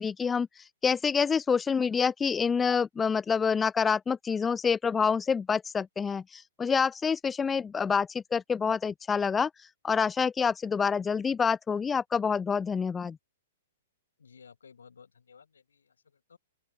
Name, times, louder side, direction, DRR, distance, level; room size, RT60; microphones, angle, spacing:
voice 1, 0.0-13.2, left 6 dB, 15° left, 0.7 m, -27 dB
voice 2, 14.2-16.4, left 6 dB, 75° left, 7.8 m, -56 dB
open air
figure-of-eight pair, 115°, 0 cm